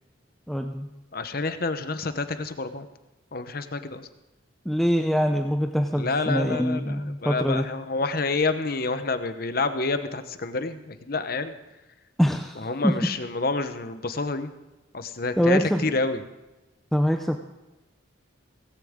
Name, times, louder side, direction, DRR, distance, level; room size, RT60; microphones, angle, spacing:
voice 1, 0.5-0.9 4.7-7.6 12.2-13.1 15.4-16.0 16.9-17.4, equal, ahead, 4 dB, 0.6 m, -24 dB
voice 2, 1.1-2.9 3.3-4.1 5.9-11.5 12.6-14.5 14.9-16.2, left 3 dB, 45° left, 9 dB, 0.9 m, -28 dB
17.5 x 16.5 x 3.7 m, 1.1 s
head